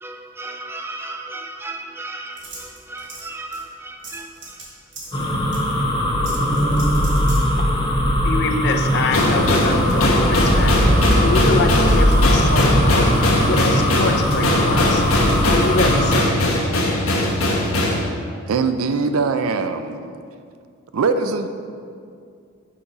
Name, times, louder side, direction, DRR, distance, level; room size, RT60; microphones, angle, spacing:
voice 1, 0.0-4.8, right 2 dB, 10° right, 4 dB, 0.3 m, -35 dB
sound 1, 2.4-3.3 3.5-3.6 4.0-4.6 4.9-5.2 5.5-5.6 6.2-7.4, right 3 dB, 55° right, 1.5 m, -37 dB
sound 2, 5.1-16.2, equal, 20° left, 0.7 m, -19 dB
voice 2, 8.2-13.1 13.4-15.0 15.4-16.3, left 3 dB, 50° left, 4 dB, 0.5 m, -25 dB
sound 3, 9.1-18.0, left 1 dB, 85° left, 1.0 m, -20 dB
voice 3, 18.5-20.1 20.9-21.5, right 4 dB, 85° right, 9 dB, 0.4 m, -21 dB
6.2 x 4.0 x 5.7 m, 2.3 s
head